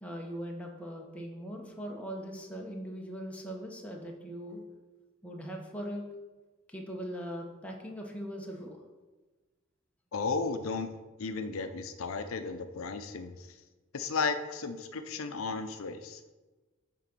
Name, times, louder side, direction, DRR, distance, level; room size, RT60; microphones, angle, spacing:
voice 1, 0.0-4.6 5.2-6.0 6.7-8.8, equal, 5° left, 0 dB, 1.0 m, -40 dB
voice 2, 10.1-10.9 11.2-13.3 13.9-16.3, left 4 dB, 85° left, 8 dB, 0.6 m, -34 dB
9.0 x 3.9 x 6.0 m, 1.2 s
head